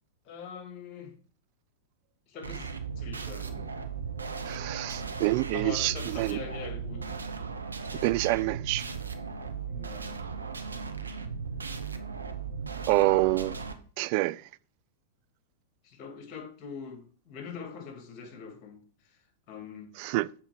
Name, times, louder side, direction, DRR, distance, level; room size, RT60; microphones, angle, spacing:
voice 1, 0.2-1.1 2.3-3.7 5.5-7.2 9.6-10.2 15.8-19.9, left 6 dB, 40° left, 2.2 m, -43 dB
sound 1, 2.4-13.7, right 5 dB, 85° right, 0.8 m, -37 dB
voice 2, 4.4-6.4 7.9-8.9 12.9-13.6 14.0-14.5 20.0-20.3, right 20 dB, 50° right, 0.3 m, -27 dB
7.5 x 4.4 x 5.0 m
hypercardioid pair, 100°, 0 cm